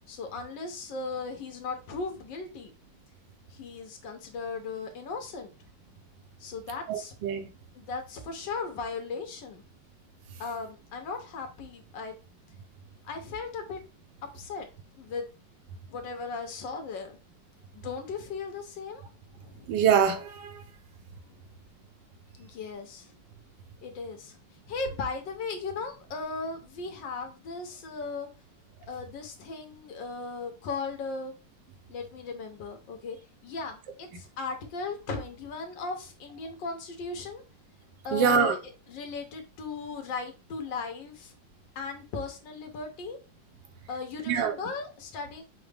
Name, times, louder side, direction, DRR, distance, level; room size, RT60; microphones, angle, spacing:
voice 1, 0.1-2.7 3.5-5.7 6.4-7.1 7.7-9.6 10.4-12.2 13.0-13.8 14.3-15.3 15.9-17.2 17.7-19.0 19.3-19.8 21.3-21.4 22.4-23.1 23.8-24.4 24.7-28.3 28.9-31.3 31.9-33.2 33.4-37.4 38.0-38.6 38.9-41.3 41.7-43.2 43.9-45.4, left 4 dB, 75° left, 1.6 m, -37 dB
voice 2, 6.9-7.5 19.7-20.6 38.1-38.6 44.3-44.6, right 7 dB, 80° right, 1.4 m, -24 dB
6.1 x 2.2 x 3.3 m
omnidirectional pair, 2.0 m